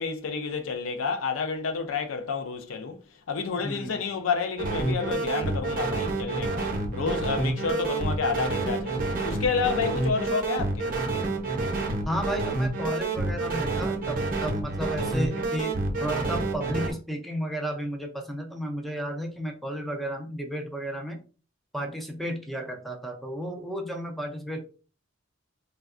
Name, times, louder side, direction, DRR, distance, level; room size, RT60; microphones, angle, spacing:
voice 1, 0.0-3.0 3.3-10.9, left 5 dB, 90° left, 0.4 m, -30 dB
voice 2, 3.6-4.0 12.1-15.7 16.0-21.2 21.7-24.6, equal, ahead, 0.5 m, -33 dB
sound 1, 4.6-16.9, right 3 dB, 45° right, 0.6 m, -28 dB
3.4 x 2.2 x 2.4 m
head